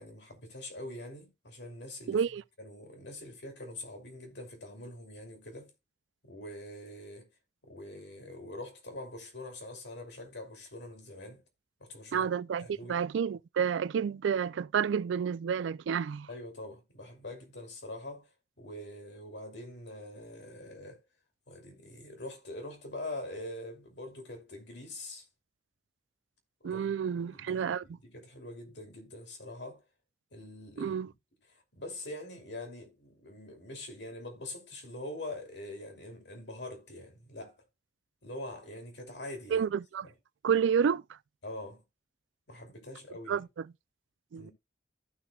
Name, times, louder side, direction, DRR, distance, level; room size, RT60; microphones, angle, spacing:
voice 1, 0.0-2.2 2.6-5.7 6.2-7.3 7.6-11.4 11.8-12.3 12.6-13.0 16.3-18.3 18.6-21.0 21.5-25.3 26.6-29.8 30.3-31.0 31.5-37.6 38.2-39.7 41.4-41.8 42.5-43.4 44.4-44.5, left 1 dB, 60° left, 2.8 m, -44 dB
voice 2, 2.1-2.4 12.1-16.3 26.6-27.8 30.8-31.1 39.5-40.1 40.4-41.0 43.3-43.6 44.3-44.5, right 7 dB, 75° right, 0.3 m, -30 dB
15.5 x 5.8 x 2.3 m
head